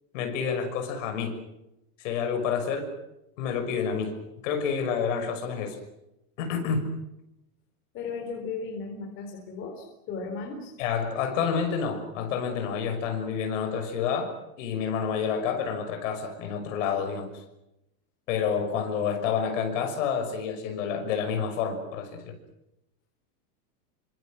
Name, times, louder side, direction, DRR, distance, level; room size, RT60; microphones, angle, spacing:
voice 1, 0.1-1.3 2.0-2.9 3.4-4.2 4.4-5.8 6.4-6.9 10.8-17.3 18.3-22.4, left 6 dB, 50° left, 6 dB, 6.2 m, -29 dB
voice 2, 7.9-10.7, left 4 dB, 25° left, 1 dB, 4.1 m, -36 dB
29.0 x 25.5 x 6.4 m, 0.88 s
supercardioid pair, 180°, 47 cm